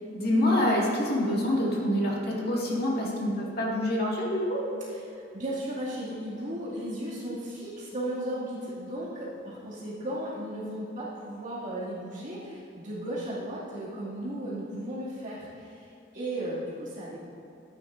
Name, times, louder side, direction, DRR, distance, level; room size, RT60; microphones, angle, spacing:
voice 1, 0.1-4.6, left 1 dB, 55° left, -3 dB, 2.1 m, -26 dB
voice 2, 5.1-17.3, right 1 dB, 45° right, -8 dB, 2.4 m, -35 dB
14.0 x 9.4 x 2.6 m, 2.7 s
head